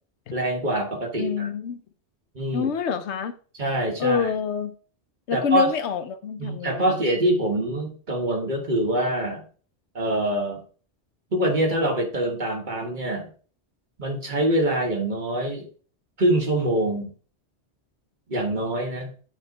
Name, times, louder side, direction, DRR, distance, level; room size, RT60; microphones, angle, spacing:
voice 1, 0.3-1.5 2.3-2.7 3.6-4.3 5.3-5.7 6.4-9.4 9.9-10.6 11.3-13.3 14.0-15.7 16.2-17.1 18.3-19.1, right 1 dB, 45° right, 1.5 m, -24 dB
voice 2, 1.2-1.8 2.5-3.3 4.0-4.7 5.3-7.0, left 6 dB, 85° left, 1.0 m, -26 dB
9.3 x 3.2 x 4.0 m
omnidirectional pair, 1.1 m